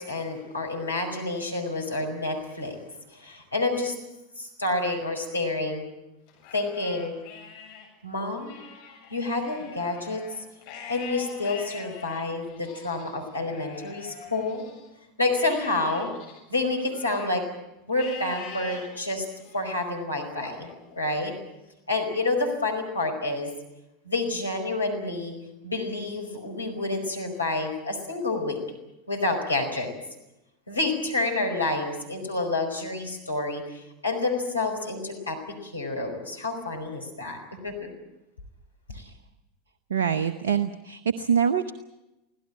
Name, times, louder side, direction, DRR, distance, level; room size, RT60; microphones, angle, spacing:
voice 1, 0.0-2.8 3.1-4.0 4.4-5.8 6.5-7.1 8.0-8.5 9.1-10.2 10.9-14.6 15.2-16.1 16.5-17.4 17.9-19.3 19.5-20.7 21.0-21.3 21.9-23.5 24.0-25.3 25.6-28.6 29.1-29.9 30.7-37.9, left 2 dB, 90° left, 2 dB, 5.0 m, -28 dB
Livestock farm animals working animals, 6.3-7.9 8.3-14.9 15.3-17.5 17.9-18.9 19.4-19.8 20.4-21.5, left 7 dB, 60° left, 6.7 m, -43 dB
voice 2, 39.9-41.7, right 7 dB, 70° right, 11 dB, 0.9 m, -25 dB
25.0 x 16.5 x 8.8 m, 0.95 s
figure-of-eight pair, 85°, 0 cm